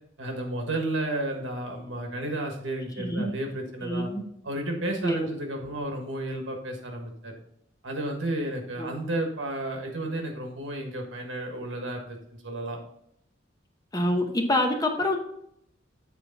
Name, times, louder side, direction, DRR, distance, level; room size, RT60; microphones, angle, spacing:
voice 1, 0.2-4.1 4.4-7.3 7.8-12.8, right 1 dB, 75° right, 3 dB, 1.5 m, -32 dB
voice 2, 3.0-3.3 3.8-4.2 5.0-5.3 8.8-8.9 13.9-15.2, left 1 dB, 20° left, 3 dB, 0.8 m, -26 dB
8.1 x 4.3 x 4.0 m, 0.73 s
head